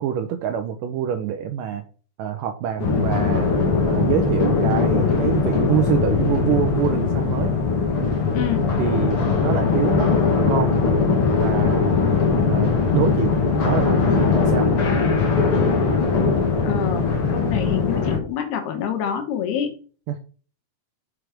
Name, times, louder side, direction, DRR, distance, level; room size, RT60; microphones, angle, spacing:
voice 1, 0.0-1.8 2.2-3.5 3.8-7.5 8.8-10.7 11.4-11.9 12.5-14.7 20.1-20.2, right 9 dB, 80° right, 8 dB, 2.0 m, -26 dB
sound 1, 2.8-18.2, left 4 dB, 45° left, 2.1 m, -20 dB
voice 2, 8.3-8.7 16.6-19.8, left 9 dB, 85° left, 5 dB, 3.5 m, -27 dB
6.4 x 6.0 x 5.1 m, 0.39 s
omnidirectional pair, 4.5 m